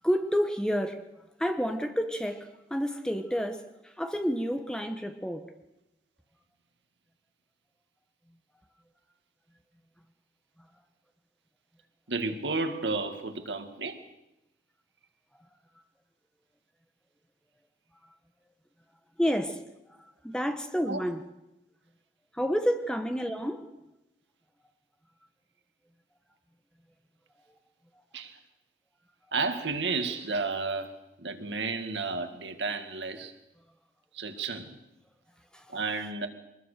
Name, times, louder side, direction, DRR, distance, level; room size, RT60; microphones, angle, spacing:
voice 1, 0.0-1.0 1.4-5.5 19.2-19.6 20.2-21.2 22.3-23.7 35.5-35.8, equal, 5° left, 1.3 m, -29 dB
voice 2, 12.1-14.0 20.9-21.0 28.1-28.4 29.3-30.9 31.2-33.3 34.1-34.8 35.7-36.3, right 3 dB, 90° right, 2.1 m, -32 dB
23.0 x 20.0 x 6.8 m
head